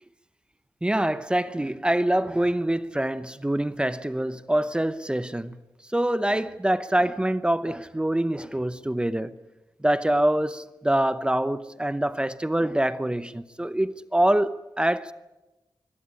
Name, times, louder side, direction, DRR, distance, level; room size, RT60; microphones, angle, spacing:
voice 1, 0.8-5.6 5.9-9.3 9.8-15.1, right 1 dB, 10° right, 0.8 m, -25 dB
24.0 x 17.5 x 9.7 m
wide cardioid pair, 115°, 8 cm